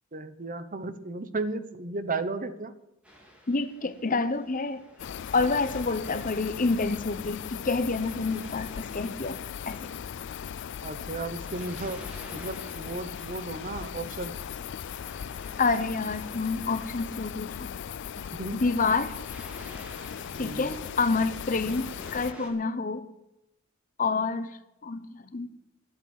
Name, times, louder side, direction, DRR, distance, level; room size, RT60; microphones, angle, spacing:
voice 1, 0.1-2.7 10.8-12.0 12.3-14.3 18.2-18.6 20.3-20.8, right 3 dB, 40° right, 11 dB, 1.0 m, -34 dB
Waves surf, 3.0-22.5, left 1 dB, 5° right, 2.7 m, -52 dB
voice 2, 3.5-4.8 5.3-9.4 9.6-9.9 15.6-17.8 18.6-19.2 20.3-23.0 24.0-25.5, left 4 dB, 40° left, 11 dB, 0.9 m, -28 dB
sound 1, 5.0-22.3, left 8 dB, 60° left, 0.4 m, -38 dB
11.5 x 8.1 x 9.3 m, 0.90 s
head